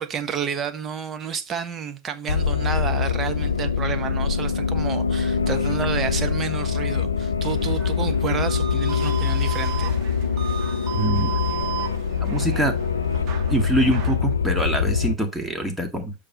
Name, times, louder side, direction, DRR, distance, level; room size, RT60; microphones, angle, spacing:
voice 1, 0.0-10.0, right 7 dB, 30° right, 1.2 m, -30 dB
sound 1, 2.3-15.1, left 6 dB, 85° left, 0.4 m, -24 dB
sound 2, 7.5-14.2, right 11 dB, 45° right, 1.7 m, -35 dB
voice 2, 10.9-11.3 12.2-12.7 13.5-16.1, right 1 dB, 5° right, 1.9 m, -24 dB
6.8 x 5.4 x 4.0 m
hypercardioid pair, 85°, 0 cm